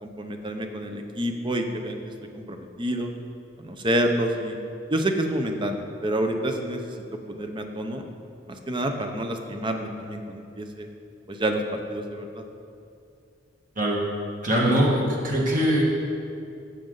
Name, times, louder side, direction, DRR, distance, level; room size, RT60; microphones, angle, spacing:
voice 1, 0.0-2.0 2.3-3.1 3.6-4.6 4.9-8.0 8.5-10.9 11.3-11.6 11.9-12.4, right 1 dB, 25° right, 5 dB, 0.8 m, -28 dB
voice 2, 14.4-15.8, equal, 45° right, -3 dB, 2.0 m, -22 dB
14.5 x 6.4 x 3.9 m, 2.6 s
head